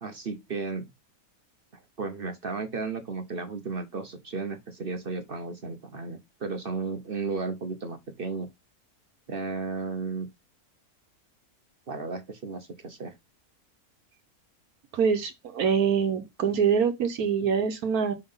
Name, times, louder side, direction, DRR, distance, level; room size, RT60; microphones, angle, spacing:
voice 1, 0.0-0.8 2.0-8.5 9.3-10.3 11.9-13.1, right 4 dB, 45° right, 1.0 m, -34 dB
voice 2, 14.9-18.1, right 6 dB, 75° right, 1.4 m, -25 dB
5.9 x 5.3 x 5.6 m
omnidirectional pair, 1.6 m